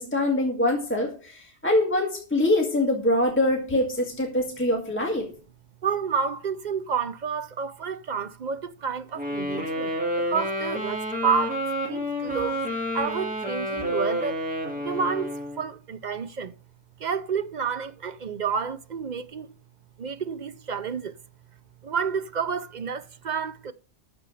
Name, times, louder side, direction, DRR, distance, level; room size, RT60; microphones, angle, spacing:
voice 1, 0.0-5.3, left 1 dB, 10° left, 1.8 m, -24 dB
voice 2, 5.8-11.6 11.9-12.6 12.9-14.4 14.8-16.5 17.0-19.5 20.0-21.2 21.8-23.7, right 6 dB, 50° right, 0.6 m, -30 dB
Wind instrument woodwind instrument, 9.2-15.6, equal, 5° right, 2.3 m, -29 dB
13.0 x 4.4 x 7.6 m
omnidirectional pair, 1.2 m